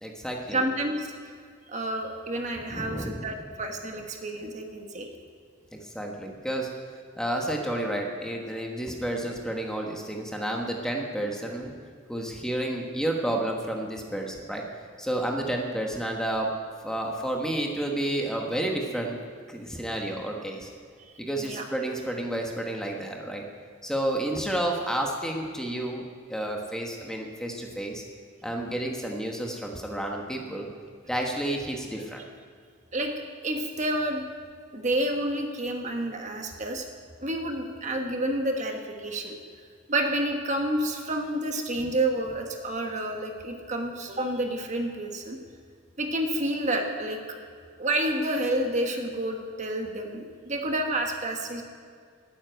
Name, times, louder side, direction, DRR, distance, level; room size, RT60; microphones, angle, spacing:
voice 1, 0.0-0.6 2.7-3.3 5.7-6.7 7.2-11.7 12.1-14.6 15.0-16.6 16.8-19.2 19.5-20.7 21.2-23.4 23.8-26.0 26.3-28.0 28.4-30.7 31.1-32.2, right 1 dB, 5° left, 1 dB, 1.2 m, -30 dB
voice 2, 0.5-1.1 1.7-5.1 21.0-21.6 32.9-33.1 33.4-34.2 34.7-36.9 37.2-39.3 39.9-45.4 46.0-47.2 47.8-51.7, right 1 dB, 35° right, 3 dB, 1.4 m, -29 dB
13.0 x 9.4 x 9.1 m, 2.1 s
head